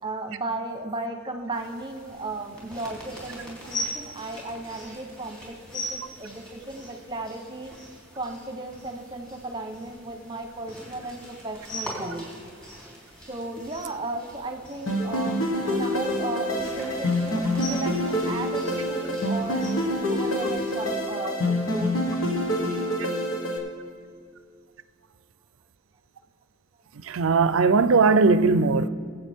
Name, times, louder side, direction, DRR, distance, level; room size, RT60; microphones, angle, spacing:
voice 1, 0.0-7.7 8.1-12.3 13.3-21.9, right 2 dB, 25° right, 1.1 m, -35 dB
sound 1, 1.5-20.9, left 1 dB, 5° left, 3.3 m, -41 dB
sound 2, 14.9-23.6, left 1 dB, 85° left, 1.7 m, -26 dB
voice 2, 27.0-28.9, right 4 dB, 80° right, 0.5 m, -19 dB
21.5 x 8.1 x 3.6 m
head